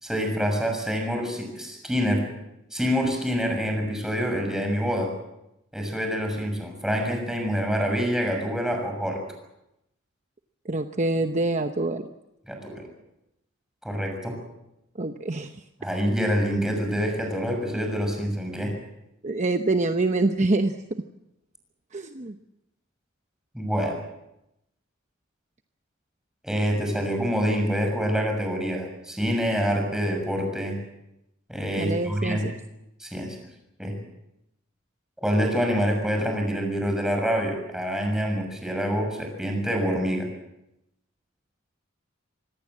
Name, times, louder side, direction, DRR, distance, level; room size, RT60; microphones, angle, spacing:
voice 1, 0.0-2.3 2.7-5.1 5.7-9.2 12.5-12.9 13.8-14.4 15.8-18.8 23.5-24.0 26.4-30.8 31.5-32.5 33.0-33.4 33.8-34.0 35.2-40.3, equal, 5° right, 3 dB, 6.6 m, -26 dB
voice 2, 10.6-12.1 15.0-15.6 19.2-20.7 21.9-22.3 31.8-32.5, right 2 dB, 35° right, 7 dB, 0.9 m, -25 dB
26.0 x 19.0 x 7.5 m, 0.86 s
head